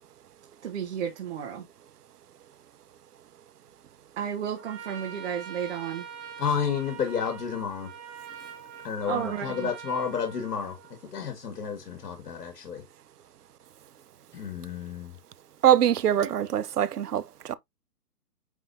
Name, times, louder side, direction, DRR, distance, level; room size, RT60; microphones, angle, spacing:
voice 1, 0.6-1.7 4.2-6.0 9.1-9.7 16.2-16.3, right 8 dB, 45° right, 1.6 m, -32 dB
Trumpet, 4.5-11.1, right 7 dB, 15° right, 1.2 m, -44 dB
voice 2, 6.4-7.9 8.8-12.8 14.3-15.2, left 7 dB, 80° left, 2.0 m, -31 dB
voice 3, 15.6-17.5, right 10 dB, 75° right, 0.9 m, -23 dB
9.4 x 3.7 x 2.8 m
hypercardioid pair, 165°, 47 cm